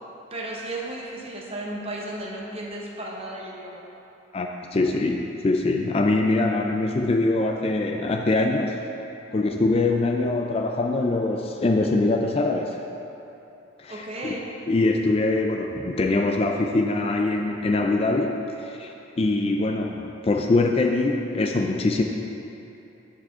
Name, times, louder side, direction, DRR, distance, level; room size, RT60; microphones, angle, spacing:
voice 1, 0.3-3.8 13.9-14.5, right 1 dB, 30° right, -2 dB, 1.0 m, -34 dB
voice 2, 4.3-8.8 9.3-12.8 13.8-14.4 14.7-22.0, left 2 dB, 30° left, 3 dB, 0.3 m, -23 dB
12.5 x 5.0 x 3.6 m, 2.9 s
head